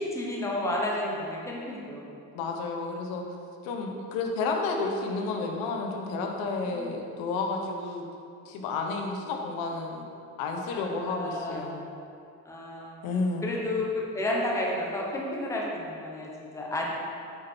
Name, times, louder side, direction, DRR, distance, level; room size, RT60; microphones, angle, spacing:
voice 1, 0.0-2.1 6.7-7.0 10.7-11.6 12.4-13.0 13.4-16.9, left 1 dB, 10° left, -3 dB, 1.0 m, -31 dB
voice 2, 2.3-3.2 3.6-8.0 8.4-10.0 10.4-11.8 13.0-13.5, left 3 dB, 85° left, 2 dB, 1.2 m, -31 dB
8.6 x 6.6 x 4.5 m, 2.4 s
cardioid pair, 170°, 35 cm